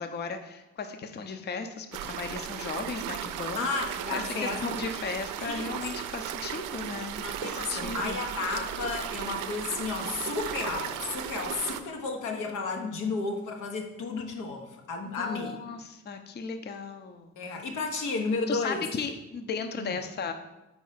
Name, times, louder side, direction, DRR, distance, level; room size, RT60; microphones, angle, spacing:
voice 1, 0.0-3.7 4.1-8.2 15.0-17.6 18.5-20.3, left 5 dB, 35° left, 7 dB, 0.6 m, -36 dB
sound 1, 1.9-11.8, right 10 dB, 85° right, 0.5 m, -36 dB
voice 2, 3.6-4.9 5.4-5.8 7.2-15.6 17.4-18.9 19.8-19.9, left 4 dB, 90° left, 2 dB, 1.0 m, -33 dB
4.7 x 4.2 x 5.6 m, 0.97 s
cardioid pair, 90°, 30 cm